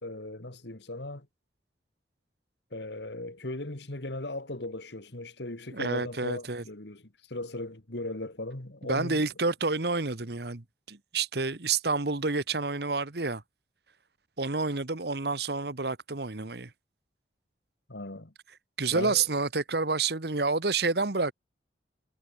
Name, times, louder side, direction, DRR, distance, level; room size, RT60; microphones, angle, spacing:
voice 1, 0.0-1.3 2.7-7.0 7.3-9.2 17.9-18.3 18.9-19.2, left 2 dB, 65° left, 2.1 m, -38 dB
voice 2, 5.7-6.6 8.8-13.4 14.4-16.7 18.8-21.3, right 4 dB, 60° right, 1.4 m, -29 dB
head